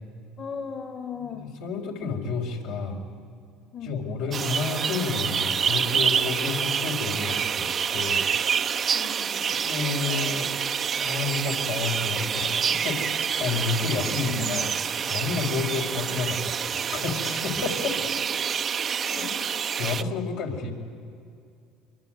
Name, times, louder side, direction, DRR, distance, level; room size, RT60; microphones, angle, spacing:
voice 1, 0.4-1.5 3.7-4.3 8.9-9.6 14.2-14.7 15.6-16.2, left 6 dB, 45° left, 5 dB, 2.3 m, -38 dB
voice 2, 1.4-3.0 3.8-8.2 9.6-10.5 11.0-14.7 15.1-18.1 19.1-19.4 19.8-20.7, left 4 dB, 75° left, 0 dB, 4.6 m, -30 dB
sound 1, 4.3-20.0, right 7 dB, 40° right, 0.8 m, -27 dB
25.0 x 23.0 x 9.3 m, 2.4 s
hypercardioid pair, 75°, 0 cm